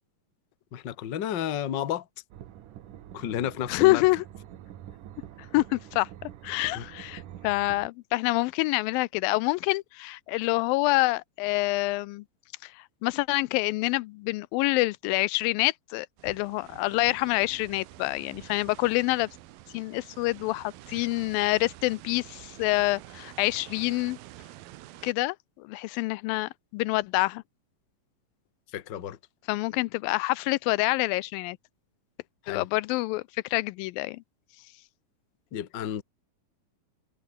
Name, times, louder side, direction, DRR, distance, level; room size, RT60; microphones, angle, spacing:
voice 1, 0.7-2.1 3.1-4.1 6.7-6.8 28.7-29.2 32.4-32.7 35.5-36.0, left 10 dB, 50° left, 1.4 m, -32 dB
sound 1, 2.3-7.9, right 11 dB, 65° right, 2.9 m, -46 dB
voice 2, 3.7-4.2 5.5-12.2 12.6-19.3 19.7-24.2 25.0-27.4 29.5-31.6 32.5-33.2 33.5-34.2, left 21 dB, 85° left, 2.3 m, -27 dB
sound 2, 16.2-25.1, right 15 dB, 85° right, 2.9 m, -48 dB
omnidirectional pair, 4.1 m